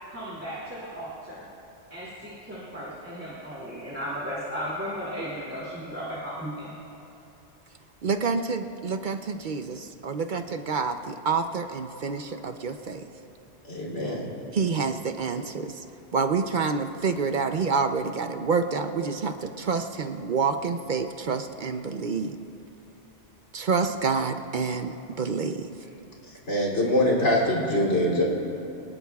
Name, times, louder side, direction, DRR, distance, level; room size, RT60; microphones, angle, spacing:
voice 1, 0.1-1.4 1.9-6.7, equal, 10° right, -8 dB, 2.5 m, -35 dB
voice 2, 8.0-8.6 8.9-9.2 9.5-9.6 10.0-13.0 14.5-15.7 16.1-22.3 23.5-24.9 25.2-25.7, right 5 dB, 50° right, 7 dB, 0.7 m, -27 dB
voice 3, 13.7-14.2 26.5-28.2, left 1 dB, 80° left, -5 dB, 3.3 m, -23 dB
23.5 x 19.5 x 2.3 m, 2.8 s
omnidirectional pair, 1.2 m